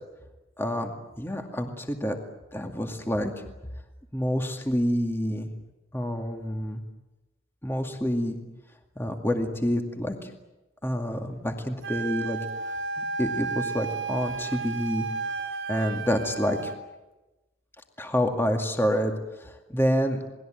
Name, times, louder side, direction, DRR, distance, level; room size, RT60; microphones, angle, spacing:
voice 1, 0.6-2.2 2.5-3.3 4.1-5.5 5.9-6.8 7.6-8.4 9.0-10.3 10.8-12.4 13.0-15.1 15.7-16.7 18.0-20.2, equal, 10° left, 4 dB, 2.2 m, -28 dB
Wind instrument woodwind instrument, 11.8-16.8, right 4 dB, 85° right, 1.8 m, -33 dB
28.5 x 20.5 x 9.1 m, 1.0 s
head